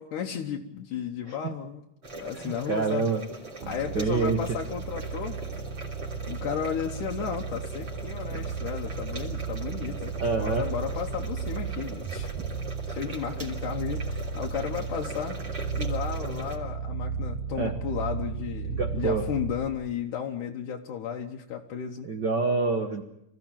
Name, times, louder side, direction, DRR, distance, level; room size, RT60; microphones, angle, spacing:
voice 1, 0.0-1.8 2.1-3.1 3.7-5.4 6.3-12.3 12.9-15.4 15.8-22.1, left 8 dB, 75° left, 1 dB, 2.6 m, -34 dB
sound 1, 2.0-16.6, right 2 dB, 35° right, 3.6 m, -41 dB
voice 2, 2.4-3.2 3.9-4.4 10.2-10.6 17.6-17.8 18.6-19.2 22.0-23.0, right 4 dB, 60° right, 5 dB, 1.1 m, -27 dB
sound 2, 3.6-19.8, right 5 dB, 85° right, 3.0 m, -34 dB
26.0 x 15.5 x 9.0 m, 0.82 s
omnidirectional pair, 3.7 m